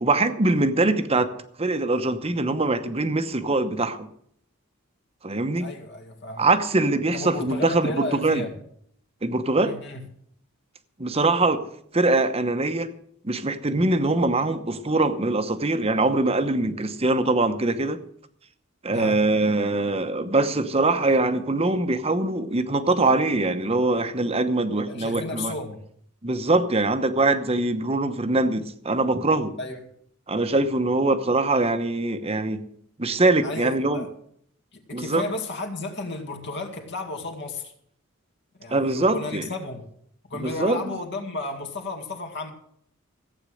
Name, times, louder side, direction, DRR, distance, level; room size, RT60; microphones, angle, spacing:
voice 1, 0.0-1.3 1.6-4.1 5.2-5.7 6.4-8.4 9.2-9.7 11.0-11.6 11.9-12.9 13.2-18.0 18.8-25.5 26.2-29.5 30.3-32.6 33.0-34.1 34.9-35.2 38.7-39.4 40.3-40.8, right 2 dB, 30° right, 9 dB, 0.9 m, -23 dB
voice 2, 5.6-6.5 7.1-8.6 9.6-10.1 18.9-19.2 24.9-25.8 29.6-29.8 33.4-34.1 34.7-37.7 38.6-39.8 40.3-42.5, left 2 dB, 55° left, 5 dB, 2.2 m, -33 dB
15.0 x 8.9 x 6.4 m, 0.66 s
head